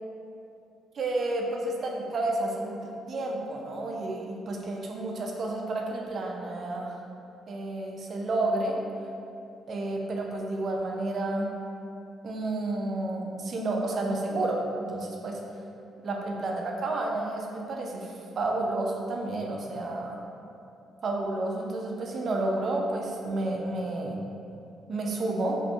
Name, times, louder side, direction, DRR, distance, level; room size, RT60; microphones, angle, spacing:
voice 1, 0.9-2.8 3.1-7.0 7.5-8.8 9.7-11.5 12.2-14.6 14.9-15.4 16.0-20.2 21.0-24.2 24.9-25.6, right 2 dB, 55° right, 0 dB, 0.3 m, -30 dB
2.6 x 2.5 x 2.2 m, 2.6 s
cardioid pair, 90°, 0 cm